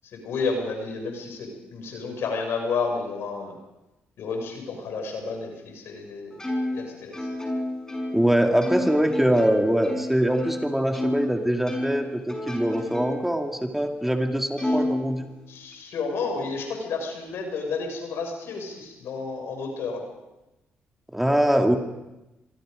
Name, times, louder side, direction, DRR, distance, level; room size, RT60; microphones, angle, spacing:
voice 1, 0.1-3.6 4.2-6.4 6.7-7.2 14.6-14.8 15.5-20.0, left 4 dB, 75° left, 3 dB, 6.3 m, -31 dB
Plucked string instrument, 6.4-11.3 11.7-13.4 13.8-13.9 14.6-15.7, left 1 dB, 15° left, 6.6 m, -31 dB
voice 2, 8.1-15.2 21.1-21.8, right 1 dB, 5° right, 4 dB, 2.6 m, -23 dB
25.5 x 23.0 x 5.2 m, 0.98 s
cardioid pair, 70°, 4 cm